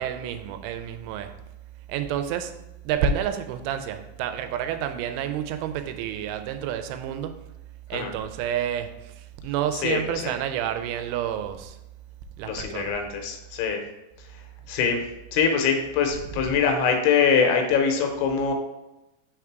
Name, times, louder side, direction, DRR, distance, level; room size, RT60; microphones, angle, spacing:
voice 1, 0.0-1.4 1.9-7.4 7.9-11.8 12.4-13.0, right 9 dB, 85° right, 8 dB, 3.0 m, -29 dB
voice 2, 9.8-10.3 12.4-13.8 14.7-15.0 15.3-18.5, left 6 dB, 80° left, 4 dB, 3.0 m, -23 dB
6.5 x 3.6 x 4.5 m, 0.94 s
omnidirectional pair, 5.4 m